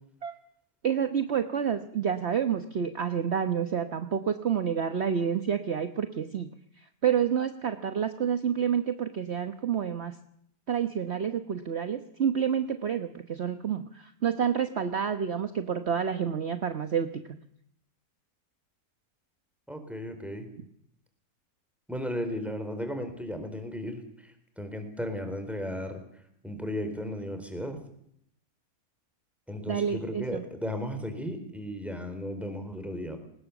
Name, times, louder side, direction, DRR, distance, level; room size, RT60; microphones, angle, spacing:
voice 1, 0.8-6.5 7.0-10.1 10.7-17.1 29.7-30.4, right 8 dB, 50° right, 8 dB, 1.3 m, -29 dB
voice 2, 19.7-20.5 21.9-24.0 24.6-26.0 26.4-27.8 29.5-33.2, equal, ahead, 7 dB, 4.1 m, -35 dB
21.5 x 20.0 x 7.2 m, 0.70 s
omnidirectional pair, 1.6 m